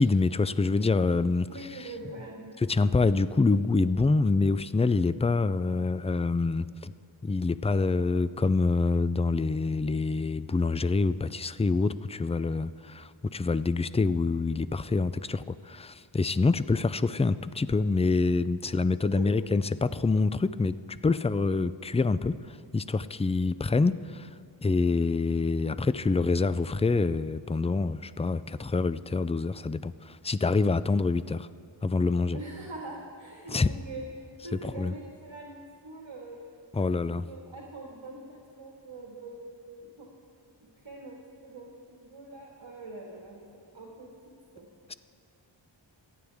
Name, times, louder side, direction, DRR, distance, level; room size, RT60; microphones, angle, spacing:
voice 1, 0.0-1.5 2.6-6.9 7.2-24.3 24.6-31.5 31.8-32.4 33.5-33.7 34.6-34.9 36.7-37.3, left 3 dB, 15° left, 15 dB, 0.3 m, -26 dB
voice 2, 1.5-2.6 19.2-19.3 32.3-34.1 34.4-36.4 36.8-40.1 40.7-43.5 43.7-44.7, right 2 dB, 70° right, -2 dB, 2.0 m, -43 dB
26.0 x 9.5 x 3.5 m, 2.4 s
wide cardioid pair, 50°, 47 cm